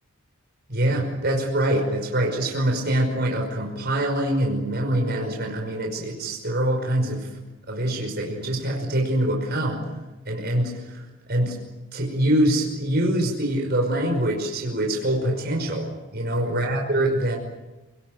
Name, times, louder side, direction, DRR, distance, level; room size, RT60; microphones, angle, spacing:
voice 1, 0.7-7.3 7.7-9.8 10.3-11.0 11.3-11.6 11.9-17.4, right 1 dB, 50° right, 1 dB, 5.6 m, -24 dB
29.5 x 19.5 x 9.3 m, 1.1 s
head